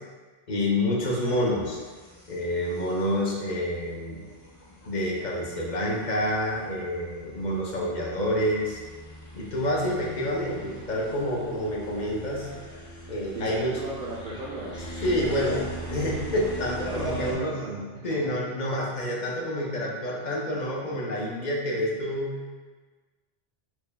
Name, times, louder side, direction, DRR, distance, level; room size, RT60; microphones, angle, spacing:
voice 1, 0.5-1.8 2.3-4.2 4.9-8.8 9.3-12.5 13.1-13.8 15.0-17.5 18.0-22.3, left 1 dB, 50° left, -3 dB, 0.7 m, -28 dB
sound 1, 1.2-17.3, right 1 dB, 30° left, 0.3 m, -42 dB
voice 2, 13.3-14.9 16.8-18.4, right 1 dB, 65° right, -5 dB, 0.7 m, -35 dB
4.4 x 2.2 x 3.3 m, 1.4 s
omnidirectional pair, 1.1 m